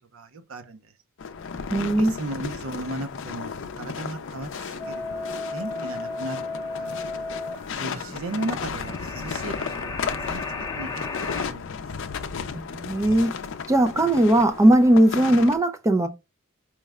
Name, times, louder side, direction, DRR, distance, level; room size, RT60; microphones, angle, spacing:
voice 1, 0.1-0.8 2.0-4.5 4.9-5.2 5.5-6.4 6.8-7.0 7.7-10.4 10.7-11.1 11.4-11.6, right 2 dB, 75° right, 0.6 m, -35 dB
sound 1, 1.2-15.6, left 6 dB, 60° left, 0.5 m, -34 dB
voice 2, 1.7-2.1 12.5-13.3 13.7-16.1, right 1 dB, 15° right, 0.3 m, -19 dB
sound 2, 4.8-11.4, left 3 dB, 20° left, 0.7 m, -34 dB
4.6 x 2.1 x 3.4 m
head